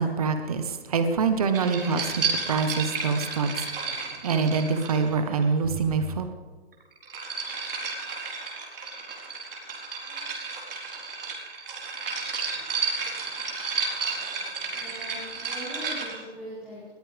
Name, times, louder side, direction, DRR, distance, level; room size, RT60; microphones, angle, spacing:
voice 1, 0.0-3.5 3.8-6.2, right 5 dB, 35° right, 8 dB, 1.4 m, -25 dB
sound 1, 1.5-5.4 6.7-16.2, right 4 dB, 55° right, 4.2 m, -32 dB
voice 2, 12.4-13.1 14.0-16.9, right 1 dB, 5° right, -9 dB, 2.2 m, -43 dB
20.0 x 14.5 x 3.6 m, 1.5 s
hypercardioid pair, 175°, 32 cm